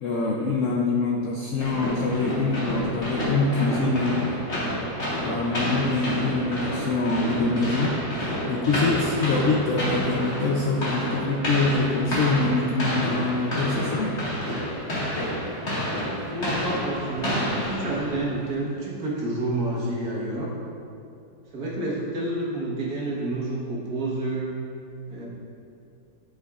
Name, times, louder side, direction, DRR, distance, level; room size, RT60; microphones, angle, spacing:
voice 1, 0.0-4.4 5.2-14.1, left 3 dB, 90° left, -1 dB, 0.6 m, -25 dB
sound 1, 1.6-18.4, equal, 40° left, 1.9 m, -29 dB
voice 2, 16.2-20.5 21.5-24.5 25.1-25.3, right 2 dB, 55° right, -6 dB, 1.8 m, -29 dB
11.5 x 5.4 x 2.4 m, 2.6 s
omnidirectional pair, 2.0 m